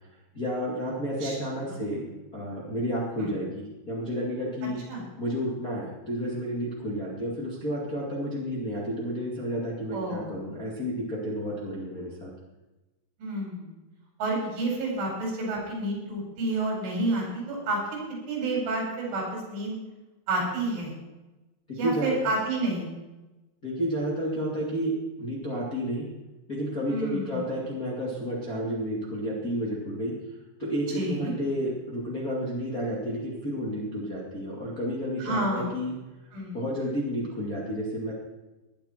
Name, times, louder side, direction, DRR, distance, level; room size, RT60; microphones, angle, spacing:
voice 1, 0.3-4.8 5.2-12.3 21.8-22.2 23.6-26.1 26.5-30.1 30.6-35.9 36.5-38.1, equal, 30° left, -4 dB, 1.9 m, -31 dB
voice 2, 9.9-10.4 13.2-13.7 14.2-18.0 18.3-19.7 20.3-20.9 21.8-22.9 26.9-27.4 30.9-31.3 35.2-35.7 36.3-36.6, right 2 dB, 75° right, -2 dB, 7.6 m, -29 dB
19.0 x 10.5 x 4.5 m, 1.1 s
omnidirectional pair, 5.5 m